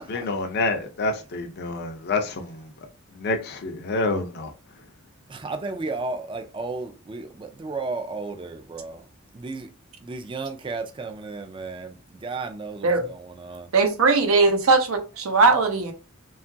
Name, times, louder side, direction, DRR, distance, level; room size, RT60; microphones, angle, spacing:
voice 1, 0.0-2.7 3.1-4.5, left 3 dB, 50° left, 0.5 m, -28 dB
voice 2, 5.3-9.0 9.3-9.7 10.0-13.7, right 3 dB, 25° right, 0.3 m, -34 dB
voice 3, 13.7-15.9, right 3 dB, 80° right, 0.6 m, -19 dB
2.9 x 2.3 x 2.6 m
head